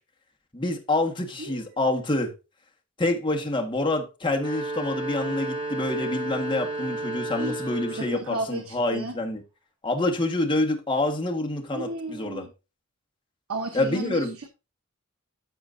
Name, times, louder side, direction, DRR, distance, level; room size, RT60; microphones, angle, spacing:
voice 1, 0.5-2.3 3.0-9.4 9.8-12.4 13.7-14.3, left 2 dB, 25° left, 1.7 m, -27 dB
voice 2, 1.4-2.0 7.4-7.6 7.9-9.2 11.7-12.5 13.5-14.5, right 2 dB, 90° right, 1.1 m, -34 dB
sound 1, 4.3-8.3, right 2 dB, 25° right, 3.9 m, -32 dB
14.5 x 5.1 x 2.7 m
head